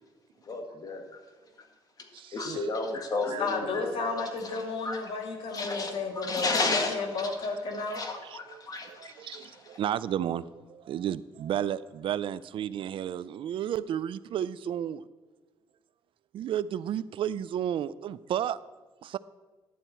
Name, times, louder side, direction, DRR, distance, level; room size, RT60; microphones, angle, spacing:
voice 1, 0.5-1.0 2.3-3.9 4.4-5.0 5.5-7.3 7.9-9.6, left 3 dB, 40° left, 4 dB, 1.7 m, -33 dB
voice 2, 2.1-2.7 3.3-3.4 8.2-15.0 16.3-18.6 19.0-19.2, right 10 dB, 60° right, 17 dB, 0.4 m, -33 dB
voice 3, 3.4-8.0, left 3 dB, 70° left, 3 dB, 1.7 m, -32 dB
11.0 x 4.3 x 8.0 m, 1.2 s
cardioid pair, 95°, 10 cm